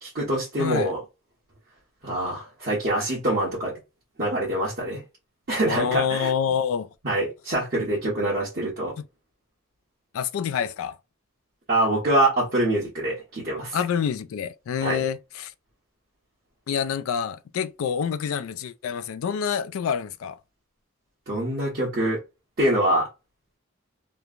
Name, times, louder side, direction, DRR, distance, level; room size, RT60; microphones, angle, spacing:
voice 1, 0.0-1.0 2.0-3.7 4.2-5.0 5.5-6.3 7.0-8.9 11.7-13.8 14.8-15.0 21.3-22.2 22.6-23.1, right 1 dB, 45° right, 1.1 m, -25 dB
voice 2, 0.6-0.9 5.7-6.9 10.1-11.0 13.7-15.5 16.7-20.4, left 7 dB, 75° left, 0.3 m, -27 dB
3.1 x 2.1 x 2.4 m
head